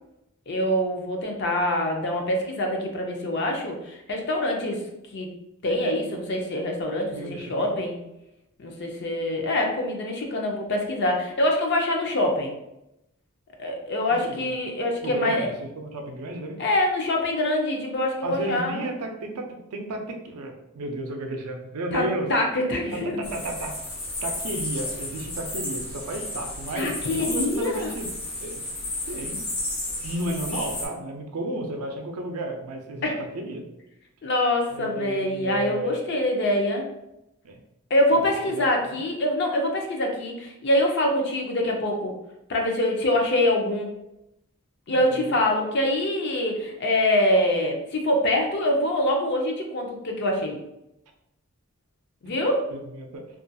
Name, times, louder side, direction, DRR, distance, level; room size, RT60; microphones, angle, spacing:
voice 1, 0.5-4.8 5.1-5.3 5.6-8.0 8.6-12.5 13.6-15.5 16.6-18.9 21.9-22.0 22.3-23.2 26.8-27.9 33.0-33.2 34.2-36.9 37.9-42.1 42.5-44.0 44.9-50.6 52.2-52.7, left 1 dB, 50° left, 2 dB, 0.5 m, -25 dB
voice 2, 7.1-7.8 14.2-14.5 15.0-16.7 18.2-22.3 22.9-23.8 24.2-28.6 29.1-29.4 30.0-33.7 34.7-36.0 37.4-37.6 38.5-39.0 44.9-45.3 52.7-53.2, right 1 dB, 90° right, 4 dB, 0.5 m, -33 dB
sound 1, 23.2-30.9, left 2 dB, 70° left, 1.1 m, -33 dB
2.4 x 2.2 x 2.6 m, 0.87 s
head